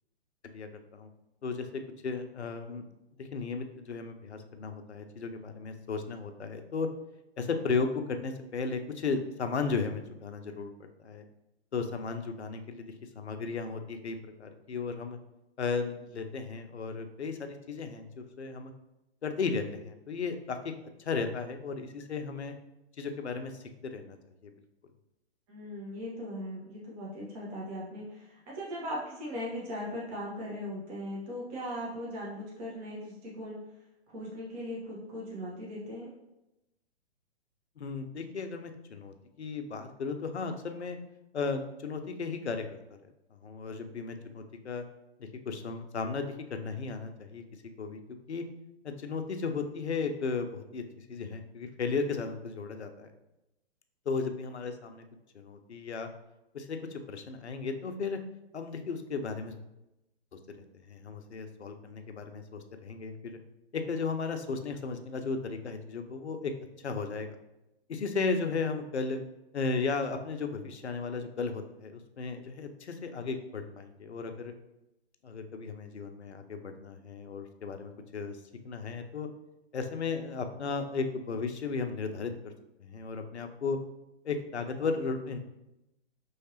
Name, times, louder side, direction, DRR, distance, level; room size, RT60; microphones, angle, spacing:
voice 1, 0.5-1.1 1.4-2.8 3.2-6.9 7.4-11.2 11.7-12.9 13.2-15.2 15.6-18.7 19.2-20.6 21.0-22.5 23.0-24.2 24.4-24.5 37.8-41.0 41.3-43.0 43.4-44.8 45.2-47.4 47.8-48.0 48.3-48.4 48.8-50.8 51.1-53.1 54.1-55.0 55.3-56.1 56.5-58.2 58.5-59.5 60.9-63.4 63.7-66.5 66.8-67.4 67.9-69.2 69.5-74.5 75.2-78.4 78.6-79.3 79.7-82.3 82.8-83.8 84.2-85.4, left 4 dB, 80° left, 6 dB, 0.7 m, -35 dB
voice 2, 25.5-33.6 34.1-36.1, equal, 35° right, -5 dB, 1.2 m, -39 dB
5.6 x 3.2 x 2.9 m, 0.93 s
figure-of-eight pair, 125°, 33 cm